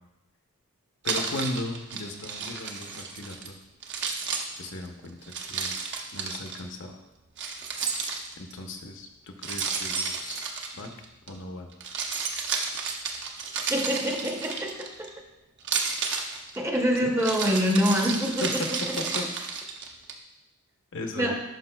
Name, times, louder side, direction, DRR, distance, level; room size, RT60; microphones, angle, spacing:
voice 1, 1.0-3.6 4.6-5.8 6.1-7.0 8.4-10.5 10.7-10.9 11.3-11.7 17.0-17.1 18.4-19.3 20.9-21.3, left 2 dB, 55° left, 4 dB, 0.8 m, -36 dB
Keys jangling, 1.0-3.5 3.8-6.6 7.4-8.6 9.4-11.3 11.7-15.1 15.6-20.1, right 5 dB, 55° right, 0.8 m, -32 dB
voice 2, 13.7-15.1 16.6-18.6 21.2-21.3, equal, 10° right, 1 dB, 0.7 m, -25 dB
12.0 x 5.2 x 2.2 m, 0.91 s
head